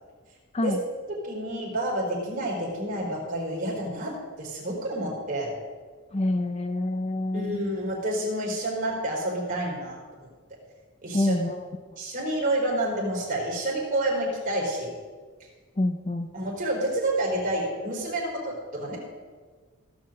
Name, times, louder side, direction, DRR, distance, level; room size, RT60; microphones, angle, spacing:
voice 1, 1.2-4.1 4.4-5.5 7.3-10.0 11.0-11.3 12.0-14.9 16.3-19.0, right 1 dB, 40° right, -3 dB, 4.0 m, -29 dB
voice 2, 6.1-7.6 11.1-11.7 15.8-16.3, left 1 dB, 30° left, 8 dB, 0.6 m, -26 dB
16.5 x 5.8 x 7.6 m, 1.5 s
head